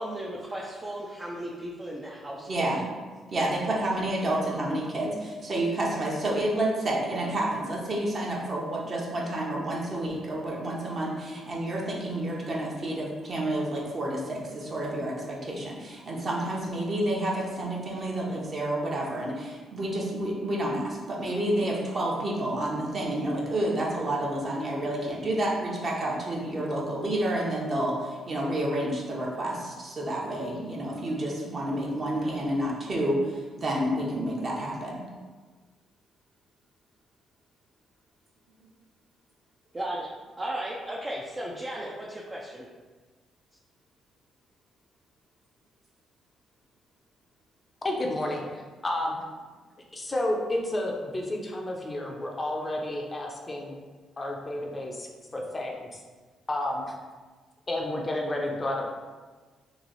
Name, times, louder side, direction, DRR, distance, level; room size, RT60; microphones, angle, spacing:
voice 1, 0.0-2.7 39.7-40.1 40.4-42.7, right 1 dB, 25° right, -4 dB, 0.5 m, -35 dB
voice 2, 2.5-2.8 3.3-35.0, right 1 dB, 40° right, -3 dB, 1.0 m, -29 dB
voice 3, 47.8-49.2 49.9-53.8 54.2-56.0 56.5-56.9 57.7-58.8, left 1 dB, 25° left, 0 dB, 0.6 m, -31 dB
3.1 x 2.8 x 4.0 m, 1.4 s
cardioid pair, 90°, 0 cm